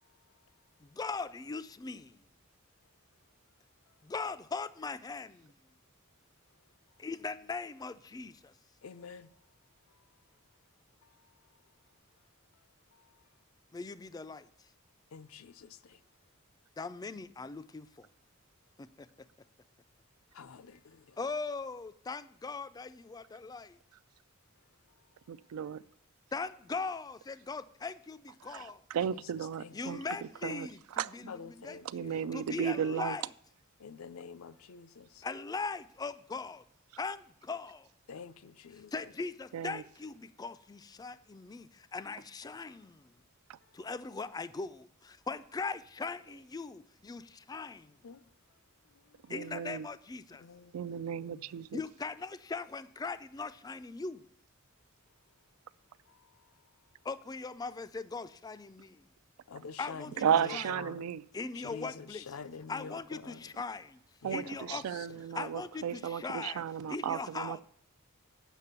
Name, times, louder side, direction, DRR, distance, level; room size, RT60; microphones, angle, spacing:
voice 1, 0.0-0.4 8.8-9.3 9.9-10.0 11.0-11.3 12.9-13.2 15.1-16.0 20.3-20.8 29.1-29.3 29.6-30.1 31.3-32.5 33.8-35.2 38.1-39.1 48.0-48.2 48.9-49.3 50.3-50.8 51.2-51.5 56.1-56.5 59.5-61.1 61.5-63.5 64.2-65.2 65.9-66.2, left 5 dB, 75° left, 0.5 m, -48 dB
voice 2, 0.8-2.2 4.0-5.5 7.0-8.5 13.7-14.4 16.8-18.1 18.8-19.1 21.2-23.8 26.3-28.8 29.7-32.1 32.3-33.2 35.2-36.6 37.0-37.9 38.9-43.2 43.7-48.0 49.3-50.4 51.7-54.3 57.0-59.0 59.8-60.2 60.5-60.7 61.3-62.2 62.7-64.0 64.3-64.8 65.4-66.6 66.9-67.6, left 4 dB, 20° left, 0.3 m, -40 dB
voice 3, 25.3-25.8 28.5-30.0 30.4-31.1 31.9-33.2 39.5-39.8 43.5-43.6 49.3-49.9 50.7-51.8 60.2-61.2 64.2-64.4 64.7-67.6, right 8 dB, 85° right, 0.3 m, -34 dB
8.2 x 5.8 x 6.7 m
head